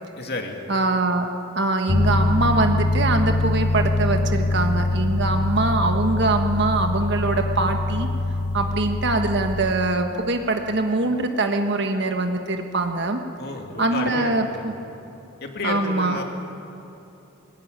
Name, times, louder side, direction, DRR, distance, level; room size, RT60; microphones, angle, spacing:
voice 1, 0.2-0.6 13.4-14.7 15.4-16.2, left 2 dB, 50° left, 2 dB, 2.4 m, -31 dB
voice 2, 0.7-1.2 1.5-8.1 8.5-13.2 13.8-14.7 15.6-16.2, right 2 dB, 55° right, 5 dB, 1.3 m, -23 dB
sound 1, 1.9-9.7, left 2 dB, 35° left, 0.6 m, -23 dB
21.0 x 19.5 x 9.6 m, 2.9 s
head